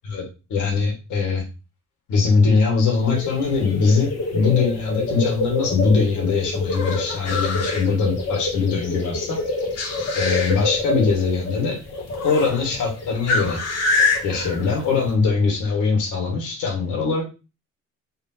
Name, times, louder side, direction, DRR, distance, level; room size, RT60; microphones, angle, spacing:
voice 1, 0.5-1.4 2.1-9.4 10.1-11.8 12.2-13.6 14.2-17.2, left 4 dB, 80° left, 0 dB, 1.8 m, -21 dB
sound 1, 2.7-15.1, left 3 dB, 55° left, 1.5 m, -26 dB
4.3 x 3.2 x 2.8 m, 0.31 s
cardioid pair, 90°, 30 cm